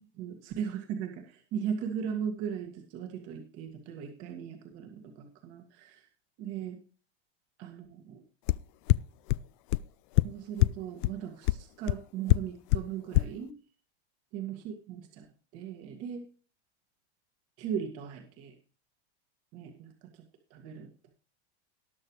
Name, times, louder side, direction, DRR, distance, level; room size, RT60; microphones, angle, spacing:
voice 1, 0.1-6.1 6.4-6.8 7.6-8.2 10.2-13.5 14.3-15.3 15.5-16.2 17.6-18.5 19.5-20.3 20.5-20.9, right 8 dB, 45° right, 3 dB, 1.9 m, -38 dB
sound 1, 8.5-8.6 8.9-9.0 9.3-9.4 9.7-9.8 10.2-10.3 10.6-10.7 11.0-11.1 11.5-11.6 11.9-12.0 12.3-12.4 12.7-12.8 13.1-13.2, left 20 dB, 50° left, 0.4 m, -21 dB
19.0 x 6.8 x 3.2 m, 0.39 s
supercardioid pair, 140°, 34 cm